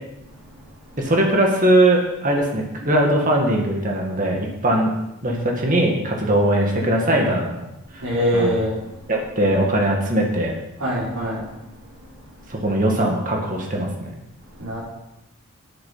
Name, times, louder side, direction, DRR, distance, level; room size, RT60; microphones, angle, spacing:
voice 1, 1.0-4.9 5.2-7.6 7.9-8.0 8.3-8.5 9.1-10.5 12.5-13.9, right 1 dB, 40° right, 0 dB, 2.1 m, -20 dB
voice 2, 8.0-8.7 10.8-11.4 12.0-12.1 14.5-14.8, equal, 85° right, -6 dB, 5.6 m, -23 dB
11.0 x 8.9 x 5.7 m, 0.90 s
head